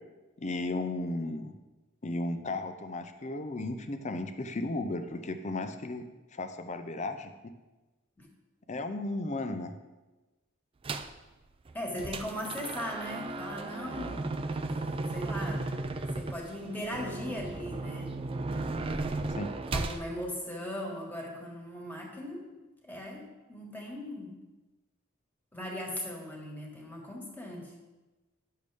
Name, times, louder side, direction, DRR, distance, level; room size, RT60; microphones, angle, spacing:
voice 1, 0.4-1.5 2.0-6.0 6.3-7.3 8.7-9.7 19.4-19.5, left 2 dB, 35° left, 8 dB, 0.6 m, -34 dB
sound 1, 10.8-11.2 11.7-20.0, right 3 dB, 25° right, 0.4 m, -35 dB
voice 2, 11.7-14.3 15.1-15.6 16.1-18.1 18.8-19.3 19.7-22.4 22.8-24.3 25.5-27.7, left 1 dB, 10° left, -1 dB, 1.5 m, -38 dB
10.0 x 6.6 x 3.4 m, 1.1 s
head